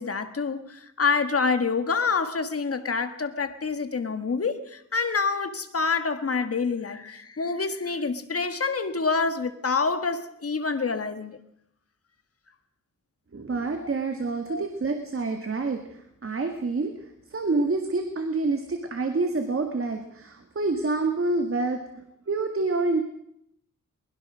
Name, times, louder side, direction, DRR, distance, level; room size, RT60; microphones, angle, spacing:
voice 1, 0.0-11.4 13.8-13.9 14.5-14.6, left 4 dB, 45° left, 1.6 m, -27 dB
voice 2, 13.3-15.8 16.2-16.9 17.3-23.0, right 3 dB, 45° right, 1.8 m, -27 dB
22.5 x 21.0 x 6.3 m
wide cardioid pair, 165°, 32 cm